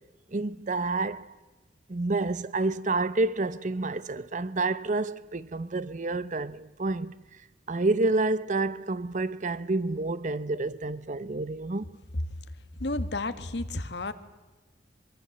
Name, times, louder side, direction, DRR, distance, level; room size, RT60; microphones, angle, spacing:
voice 1, 0.3-1.3 1.9-7.1 7.7-11.9, right 2 dB, 45° right, 0.8 m, -29 dB
voice 2, 12.8-14.1, left 2 dB, 70° left, 1.5 m, -31 dB
23.5 x 22.5 x 7.8 m
head